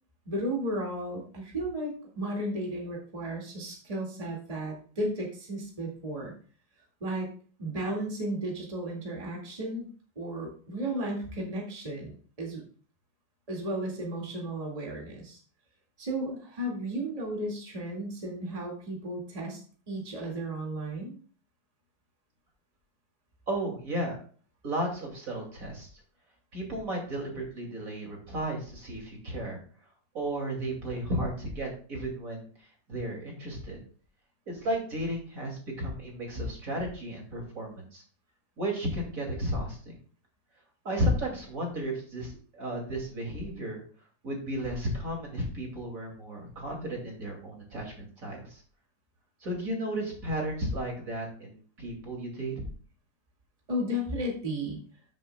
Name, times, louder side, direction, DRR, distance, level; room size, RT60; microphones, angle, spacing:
voice 1, 0.3-6.3 7.0-7.3 7.6-9.9 10.2-12.6 13.5-15.4 16.0-19.6 19.9-21.2 53.7-54.8, right 1 dB, 20° right, -2 dB, 2.0 m, -34 dB
voice 2, 23.5-24.1 24.6-25.9 26.5-29.6 30.1-32.5 32.9-33.8 34.5-38.0 38.6-39.9 40.8-43.8 44.2-48.6 49.4-52.5, right 1 dB, 45° right, 0 dB, 2.8 m, -33 dB
13.5 x 7.3 x 2.2 m, 0.42 s
omnidirectional pair, 2.0 m